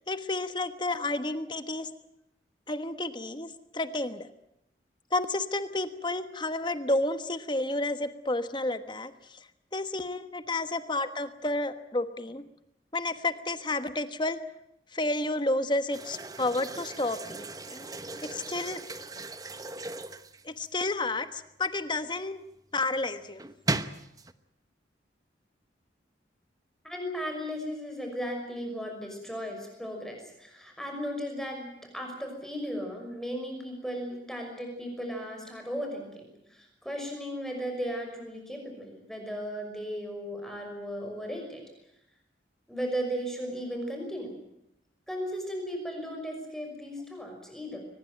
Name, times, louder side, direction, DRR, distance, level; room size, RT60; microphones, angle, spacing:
voice 1, 0.1-1.9 2.7-4.3 5.1-9.4 9.7-12.5 12.9-14.4 14.9-17.9 18.2-18.8 20.4-22.4 22.7-23.4, left 2 dB, 25° left, 11 dB, 1.3 m, -31 dB
sound 1, 15.9-20.9 23.4-24.3, right 2 dB, 20° right, 1.0 m, -37 dB
voice 2, 26.8-41.6 42.7-44.3 45.1-47.8, equal, ahead, 2 dB, 5.9 m, -36 dB
23.0 x 20.5 x 9.1 m, 0.82 s
head